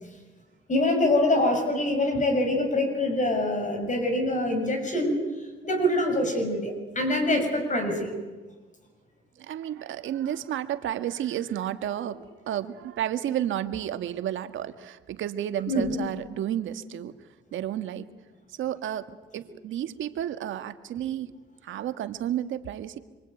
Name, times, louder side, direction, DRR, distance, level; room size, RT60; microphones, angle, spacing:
voice 1, 0.7-8.1 15.7-15.9, left 1 dB, 40° left, 4 dB, 6.7 m, -25 dB
voice 2, 9.4-17.1 17.5-18.1 18.5-21.3 21.6-23.0, right 11 dB, 75° right, 9 dB, 1.7 m, -31 dB
27.0 x 24.0 x 9.1 m, 1.3 s
cardioid pair, 90°, 20 cm